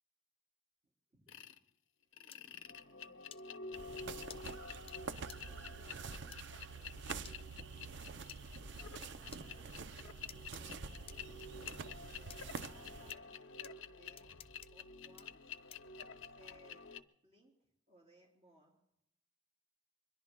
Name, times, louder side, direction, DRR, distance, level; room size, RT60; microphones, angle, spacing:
voice 1, 1.1-1.6 2.0-2.4 2.8-4.0 5.1-6.8 8.7-11.5 11.9-13.5 13.8-14.3 14.7-15.4 16.2-18.7, right 1 dB, 35° right, -3 dB, 3.3 m, -66 dB
sound 1, 1.3-1.6 2.1-17.0, left 5 dB, 80° left, 0.8 m, -50 dB
sound 2, 2.3-2.4 3.3-3.4 4.3-4.4 4.9-5.0 5.3-5.4 6.3-6.4 7.3-7.4 8.3-8.4 9.3-9.4 10.3-10.6 11.1-11.8 12.3-12.7 13.1-13.2 13.6-13.7 14.2-14.7 15.2-15.3 15.7-15.9, left 9 dB, 30° left, 0.5 m, -53 dB
sound 3, 3.7-13.1, right 5 dB, 60° right, 0.6 m, -47 dB
25.0 x 22.0 x 2.3 m, 0.82 s
head